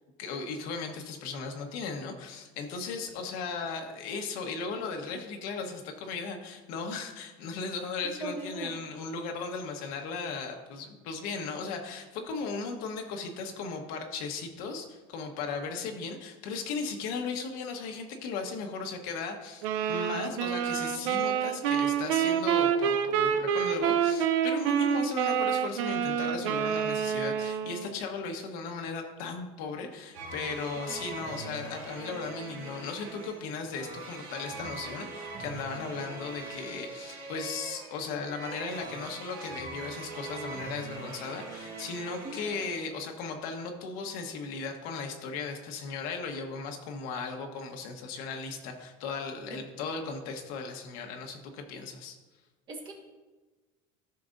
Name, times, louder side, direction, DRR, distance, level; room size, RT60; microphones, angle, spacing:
voice 1, 0.2-52.2, left 4 dB, 65° left, 3 dB, 1.2 m, -37 dB
voice 2, 8.2-8.8 30.9-31.0 34.5-34.7 42.2-42.4 49.5-49.6 52.7-52.9, right 2 dB, 30° right, 1 dB, 1.5 m, -39 dB
sound 1, 19.6-28.0, right 8 dB, 90° right, 0.7 m, -27 dB
sound 2, 30.1-42.7, right 3 dB, 70° right, 1.8 m, -42 dB
13.5 x 5.9 x 2.6 m, 1.2 s
cardioid pair, 155°, 15 cm